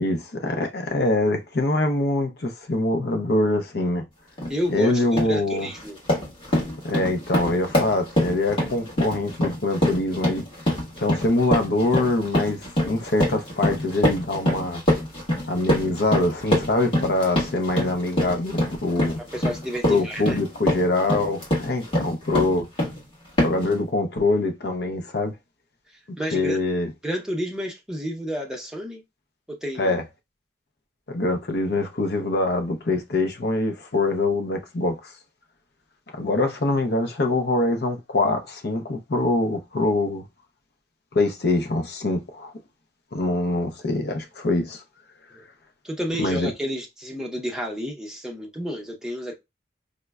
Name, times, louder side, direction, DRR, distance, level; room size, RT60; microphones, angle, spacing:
voice 1, 0.0-4.0 4.7-5.7 6.8-10.5 11.0-14.8 15.5-19.2 19.9-22.7 23.4-25.3 26.3-26.9 29.8-30.0 31.1-35.1 36.1-40.2 41.1-42.5 43.1-44.8 46.2-46.5, left 2 dB, 55° left, 0.6 m, -24 dB
sound 1, 4.4-4.6 5.0-5.4 5.7-23.0 23.4-23.7, left 1 dB, 30° left, 1.4 m, -25 dB
voice 2, 4.5-6.0 19.3-20.4 26.2-26.6 27.0-29.0 29.5-30.0 45.8-49.4, equal, 5° right, 0.6 m, -30 dB
5.0 x 2.1 x 2.2 m
head